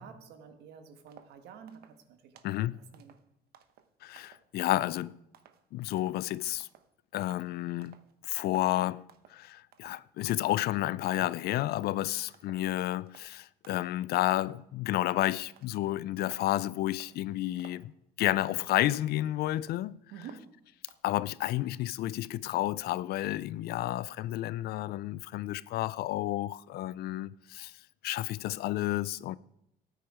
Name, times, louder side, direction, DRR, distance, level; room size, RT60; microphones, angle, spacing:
voice 1, 0.0-3.2 20.1-20.7, right 7 dB, 80° right, 1.5 m, -50 dB
sound 1, 1.1-1.4 1.7-2.0 2.4-2.6 2.9-4.5 4.7-5.6 6.0-6.3 6.6-6.9 7.2-7.5 7.8-8.1 8.4-8.8 9.1-9.4 9.7-10.1 10.4-10.7 11.0-11.4 11.7-12.1 12.3-12.7 13.0-13.3 13.6-14.0 14.3-14.7 14.9-16.5 16.9-17.2 17.6-17.9 18.2-18.6 18.9-19.8 20.2-21.0, right 9 dB, 65° right, 1.0 m, -58 dB
voice 2, 2.4-2.8 4.0-5.2 5.7-6.7 7.1-8.0 8.2-9.0 9.3-17.9 18.2-20.0 21.0-27.7 28.0-29.4, left 15 dB, 70° left, 0.4 m, -31 dB
13.5 x 9.3 x 4.9 m
cardioid pair, 110°, 17 cm